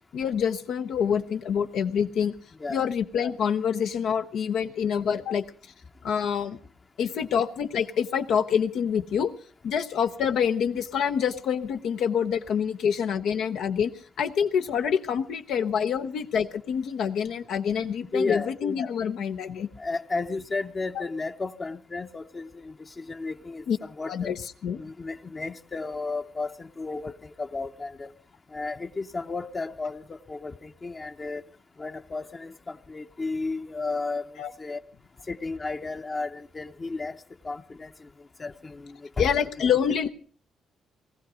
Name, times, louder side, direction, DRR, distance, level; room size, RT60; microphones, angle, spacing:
voice 1, 0.1-2.3 2.7-5.4 6.0-6.6 7.0-9.3 9.6-13.9 14.2-19.7 23.7-23.8 24.1-24.8 34.4-34.5 39.2-40.1, left 7 dB, 75° left, 0.9 m, -26 dB
voice 2, 18.1-18.5 19.8-24.3 24.8-28.1 28.5-31.4 31.8-34.8 35.3-37.1 37.4-38.1 38.4-39.3, left 3 dB, 30° left, 0.8 m, -33 dB
19.0 x 15.0 x 5.0 m
cardioid pair, 90°, 0 cm